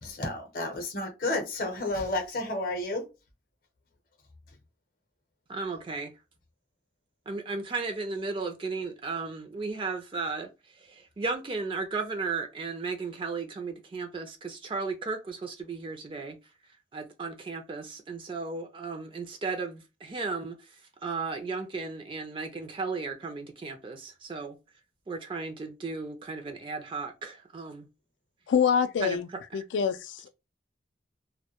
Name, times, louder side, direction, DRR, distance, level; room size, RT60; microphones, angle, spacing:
voice 1, 0.0-3.0, left 2 dB, 50° left, 0.6 m, -31 dB
voice 2, 5.5-6.1 7.3-16.4 16.9-24.6 25.1-27.9 29.0-29.2 29.5-29.6, right 4 dB, 30° right, 0.3 m, -35 dB
voice 3, 28.5-29.3 29.5-30.3, left 7 dB, 90° left, 0.3 m, -25 dB
2.1 x 2.1 x 2.8 m
head